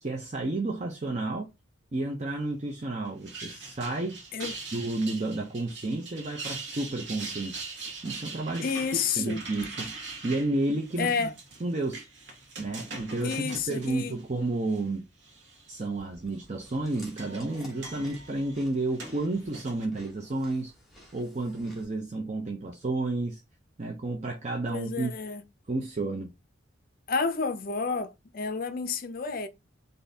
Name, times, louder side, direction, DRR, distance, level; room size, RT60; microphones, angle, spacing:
voice 1, 0.0-1.5 1.9-4.2 4.7-7.6 8.0-8.7 9.2-9.9 10.2-11.3 11.6-12.0 12.6-15.0 15.7-20.7 21.1-23.4 23.8-25.1 25.7-26.3, right 2 dB, 35° right, 0.6 m, -31 dB
sound 1, 3.0-14.8 15.2-15.8 16.6-19.9, right 3 dB, 65° right, 1.2 m, -42 dB
voice 2, 8.6-9.4 11.0-11.3 13.2-14.1 24.7-25.4 27.1-29.5, left 5 dB, 45° left, 0.5 m, -30 dB
Chewing mastication, 16.0-21.8, left 1 dB, ahead, 1.2 m, -53 dB
4.0 x 2.6 x 3.4 m
head